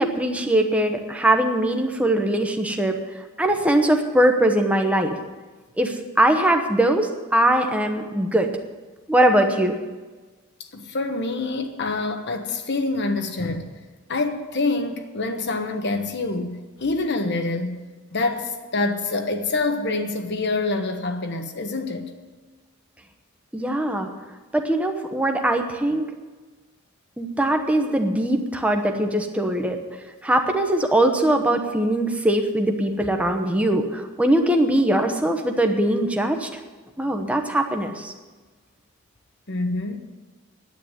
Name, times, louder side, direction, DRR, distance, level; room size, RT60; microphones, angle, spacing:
voice 1, 0.0-3.0 3.4-5.2 5.8-8.5 9.1-9.8 23.5-24.1 24.5-26.1 27.2-29.8 30.2-36.5 37.0-38.1, right 1 dB, 5° right, 1.0 m, -21 dB
voice 2, 10.7-13.7 14.1-17.8 18.1-22.1 39.5-40.0, left 3 dB, 50° left, 1.2 m, -26 dB
9.4 x 9.4 x 9.7 m
head